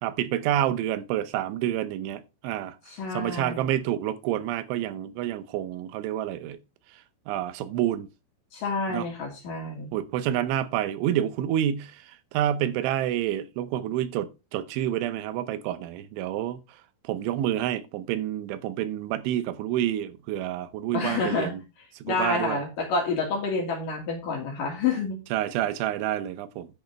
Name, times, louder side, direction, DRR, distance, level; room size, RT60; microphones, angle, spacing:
voice 1, 0.0-2.8 3.1-6.6 7.3-8.1 8.9-9.1 9.9-16.6 17.0-21.6 22.1-22.6 25.3-26.7, right 12 dB, 85° right, 3.2 m, -28 dB
voice 2, 2.9-3.7 8.5-10.0 20.9-21.5 22.0-25.2, left 4 dB, 55° left, 3.0 m, -28 dB
10.5 x 8.2 x 3.3 m
omnidirectional pair, 5.3 m